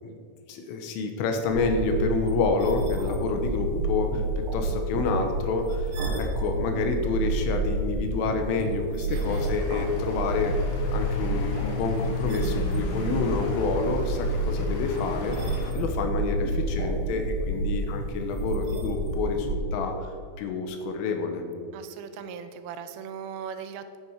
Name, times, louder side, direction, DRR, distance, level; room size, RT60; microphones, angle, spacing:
voice 1, 0.5-4.2 4.5-5.9 6.2-10.6 10.9-15.4 15.7-20.1 20.4-21.4, left 4 dB, 85° left, 4 dB, 3.6 m, -28 dB
sound 1, 1.5-19.5, right 2 dB, 65° right, 2.8 m, -29 dB
voice 2, 9.1-9.5 21.7-24.0, right 7 dB, 85° right, 10 dB, 3.1 m, -39 dB
sound 2, 9.2-15.7, left 5 dB, 65° left, 2.4 m, -35 dB
10.5 x 9.8 x 4.7 m, 2.3 s
omnidirectional pair, 5.7 m